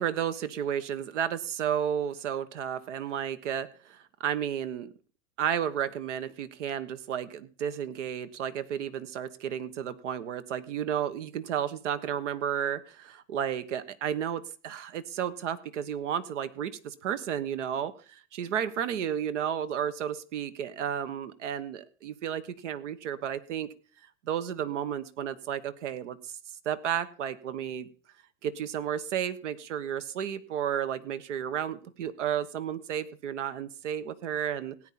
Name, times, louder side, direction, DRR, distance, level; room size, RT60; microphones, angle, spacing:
voice 1, 0.0-4.9 5.4-23.7 24.2-26.4 26.6-27.9 28.4-34.8, right 9 dB, 75° right, 12 dB, 1.4 m, -32 dB
17.5 x 8.8 x 4.2 m, 0.37 s
hypercardioid pair, 120°, 37 cm